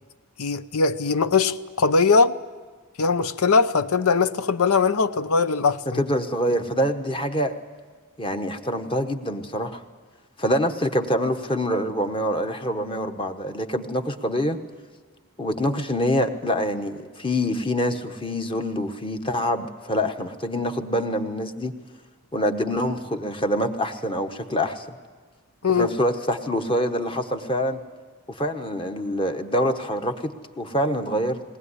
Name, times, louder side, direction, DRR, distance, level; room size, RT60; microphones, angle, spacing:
voice 1, 0.4-2.4 3.0-6.0 25.6-25.9, left 4 dB, 75° left, 0.7 m, -21 dB
voice 2, 5.9-7.6 8.2-9.8 10.4-14.6 15.4-21.7 22.3-24.9 25.8-27.8 28.3-31.4, equal, 25° left, 1.1 m, -25 dB
20.0 x 19.5 x 9.8 m
head